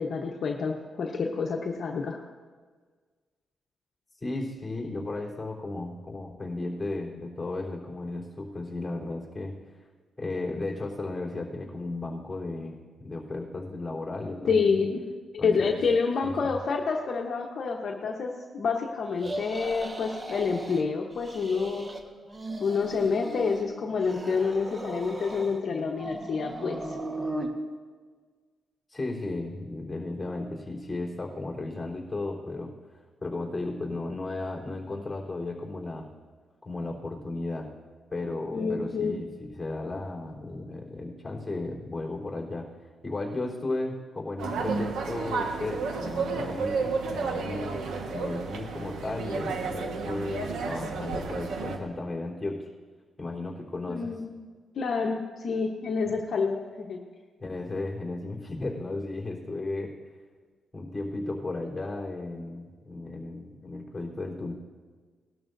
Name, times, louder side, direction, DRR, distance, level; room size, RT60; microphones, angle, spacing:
voice 1, 0.0-2.2 14.5-15.0 15.3-21.9 22.6-27.0 38.5-39.1 53.9-54.4 54.8-57.0, left 5 dB, 60° left, 0 dB, 1.1 m, -28 dB
voice 2, 4.2-9.5 10.2-14.7 15.4-15.8 16.2-16.6 28.9-32.7 33.2-36.1 36.6-37.7 38.1-42.7 43.0-52.7 53.2-54.1 57.4-59.9 60.7-64.5, left 2 dB, 15° left, -2 dB, 3.7 m, -35 dB
sound 1, 19.2-20.8 21.1-22.0 22.3-23.7 24.0-25.6 26.0-27.5, right 2 dB, 30° right, 1.4 m, -37 dB
sound 2, 44.4-51.8, right 4 dB, 85° right, 1.4 m, -32 dB
19.5 x 12.5 x 2.7 m, 1.5 s
cardioid pair, 95°, 0 cm